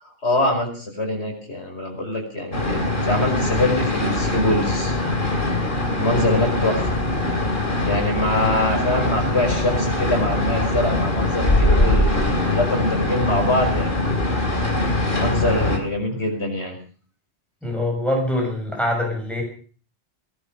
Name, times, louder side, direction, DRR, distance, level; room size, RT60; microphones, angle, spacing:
voice 1, 0.2-5.0 6.0-6.9 7.8-14.0 15.2-16.8, left 1 dB, 75° left, 3 dB, 5.5 m, -24 dB
sound 1, 2.5-15.8, left 2 dB, 50° left, 3.4 m, -22 dB
voice 2, 17.6-19.4, left 1 dB, ahead, 0 dB, 6.9 m, -24 dB
19.0 x 11.5 x 6.6 m, 0.43 s
omnidirectional pair, 1.1 m